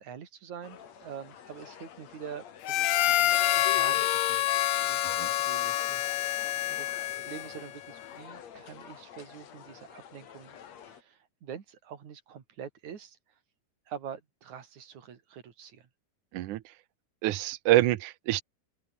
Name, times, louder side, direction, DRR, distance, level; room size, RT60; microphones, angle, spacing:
voice 1, 0.0-4.4 4.8-5.0 5.3-6.1 6.7-13.2 13.9-15.9, right 8 dB, 50° right, 3.7 m, -45 dB
sound 1, 0.6-11.0, left 8 dB, 50° left, 2.7 m, -48 dB
Harmonica, 2.6-7.7, left 14 dB, 85° left, 3.2 m, -27 dB
voice 2, 17.2-18.4, right 15 dB, 75° right, 2.0 m, -25 dB
open air
omnidirectional pair, 4.5 m